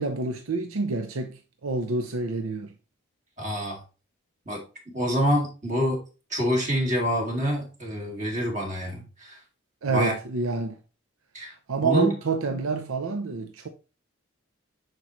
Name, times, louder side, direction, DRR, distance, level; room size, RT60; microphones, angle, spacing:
voice 1, 0.0-2.7 9.8-10.8 11.7-13.7, right 4 dB, 90° right, 0.7 m, -28 dB
voice 2, 3.4-3.8 4.5-6.0 6.3-9.4 9.9-10.1 11.3-11.5 11.8-12.1, equal, 35° right, 2.3 m, -26 dB
10.5 x 4.5 x 3.1 m
head